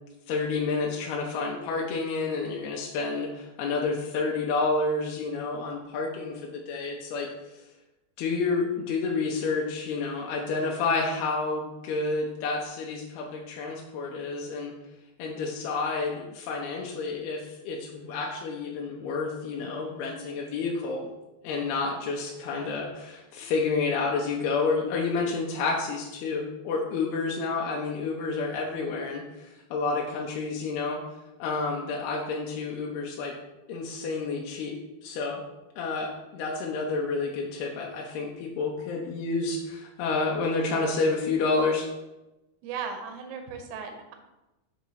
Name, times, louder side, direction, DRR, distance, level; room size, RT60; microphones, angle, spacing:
voice 1, 0.3-7.6 8.2-14.7 15.2-21.1 21.4-31.0 31.4-33.4 33.7-34.8 35.0-35.4 35.8-41.9, left 4 dB, 80° left, -1 dB, 2.6 m, -29 dB
voice 2, 42.6-44.2, right 6 dB, 90° right, 5 dB, 2.9 m, -36 dB
7.1 x 2.8 x 5.6 m, 0.98 s
omnidirectional pair, 4.6 m